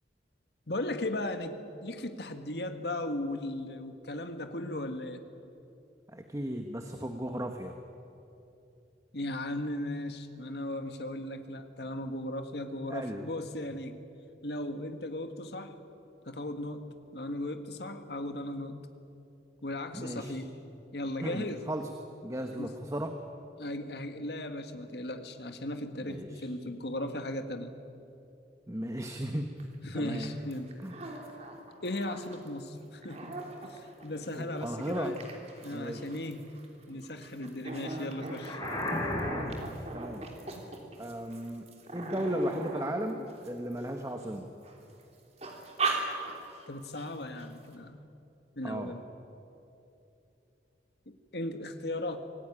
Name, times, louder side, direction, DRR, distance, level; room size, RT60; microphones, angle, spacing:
voice 1, 0.7-5.3 9.1-14.0 14.4-15.8 16.3-18.8 19.6-20.6 20.9-21.7 22.6-22.7 23.6-27.7 29.8-30.7 31.8-35.2 35.6-36.5 36.9-38.6 46.7-48.0 48.6-49.0 51.1-52.2, left 1 dB, 70° left, 7 dB, 1.8 m, -37 dB
voice 2, 6.1-7.8 12.9-13.3 19.9-20.3 21.2-21.9 22.2-23.2 26.1-26.5 28.7-29.5 29.9-30.3 30.8-31.0 34.3-35.2 35.7-36.1 38.8-39.0 39.4-39.6 39.9-40.3 41.0-44.5 48.6-48.9, equal, 20° right, 5 dB, 1.3 m, -36 dB
sound 1, 29.6-29.7 29.9-32.5 32.8-44.2 44.6-45.0 45.4-46.7 47.0-47.1 47.4-47.7, right 3 dB, 40° right, 3.3 m, -39 dB
sound 2, 38.2-39.9, left 1 dB, 25° left, 3.9 m, -34 dB
25.5 x 18.5 x 10.0 m, 2.8 s
head